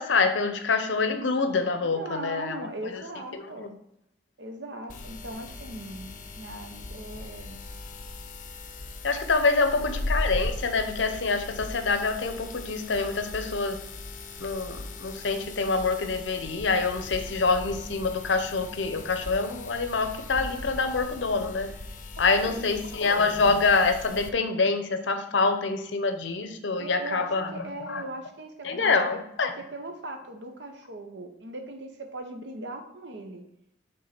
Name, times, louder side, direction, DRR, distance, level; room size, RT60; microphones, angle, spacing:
voice 1, 0.0-2.7 2.9-3.0 3.6-3.7 9.0-13.8 14.4-21.7 22.2-28.0 28.6-29.5, left 4 dB, 80° left, 8 dB, 0.7 m, -26 dB
voice 2, 1.8-3.8 4.4-7.7 9.5-9.9 22.2-22.8 26.8-33.4, right 1 dB, 70° right, 5 dB, 0.9 m, -39 dB
sound 1, 4.9-24.3, left 2 dB, 45° left, 0.6 m, -38 dB
5.4 x 3.6 x 5.9 m, 0.78 s
head